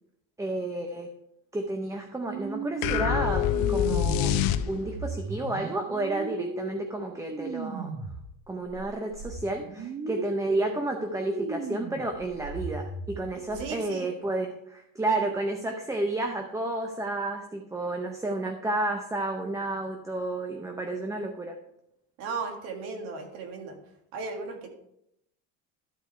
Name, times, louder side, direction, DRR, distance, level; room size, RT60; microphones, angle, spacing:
voice 1, 0.4-1.1 1.5-4.3 4.7-7.9 8.5-21.5, right 2 dB, 10° right, 3 dB, 0.6 m, -31 dB
sound 1, 2.3-8.3 8.7-13.6, right 4 dB, 30° right, 1.5 m, -37 dB
sound 2, 2.8-5.1, left 10 dB, 70° left, 0.7 m, -25 dB
voice 2, 13.5-14.1 22.2-23.8 24.1-24.7, right 4 dB, 70° right, 4 dB, 1.9 m, -36 dB
11.5 x 4.8 x 4.5 m, 0.79 s
cardioid pair, 135°, 36 cm